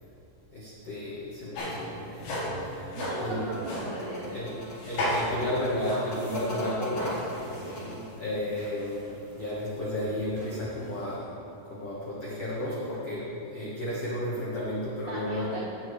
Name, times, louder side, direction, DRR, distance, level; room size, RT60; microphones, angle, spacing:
voice 1, 0.5-3.4 4.3-4.5 4.8-7.2 8.2-11.2 11.7-15.6, left 1 dB, 80° left, -8 dB, 1.4 m, -33 dB
sound 1, 1.5-1.8 2.2-3.9 4.8-5.4 5.8-9.5 10.0-11.1, equal, 65° left, 4.5 m, -35 dB
voice 2, 2.9-4.4 7.5-8.0 15.1-15.6, right 2 dB, 80° right, -7 dB, 1.7 m, -37 dB
sound 2, 3.2-8.2, left 2 dB, 40° left, 1.7 m, -40 dB
17.5 x 6.3 x 3.2 m, 2.9 s
omnidirectional pair, 5.2 m